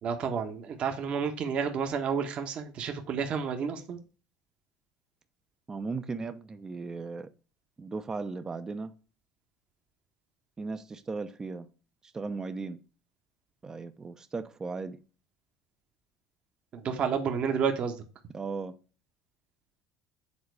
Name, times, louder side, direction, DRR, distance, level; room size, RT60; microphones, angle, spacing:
voice 1, 0.0-4.0 16.7-18.0, right 6 dB, 50° right, 1.2 m, -30 dB
voice 2, 5.7-7.3 7.8-8.9 10.6-11.7 12.0-12.8 13.6-15.0 18.3-18.7, right 4 dB, 25° right, 0.7 m, -36 dB
7.4 x 4.0 x 4.7 m
hypercardioid pair, 80°, 3 cm